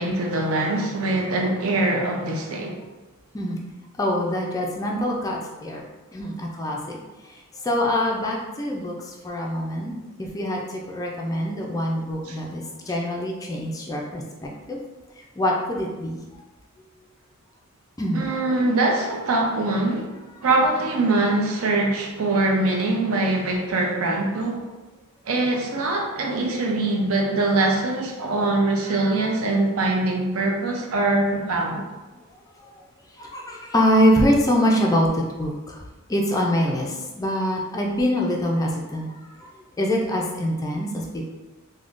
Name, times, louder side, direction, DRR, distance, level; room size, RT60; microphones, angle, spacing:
voice 1, 0.0-2.8 12.2-12.4 18.1-20.1 20.4-24.6 25.3-31.9, right 2 dB, 70° right, 1 dB, 0.5 m, -23 dB
voice 2, 4.0-5.8 6.1-7.0 7.6-9.9 10.2-14.8 15.4-16.2 18.0-18.2 28.9-29.3 32.6-32.7 33.2-35.8 36.1-39.1 39.4-39.5 39.8-41.2, equal, 15° left, -1 dB, 0.3 m, -24 dB
3.5 x 2.1 x 2.4 m, 1.1 s
head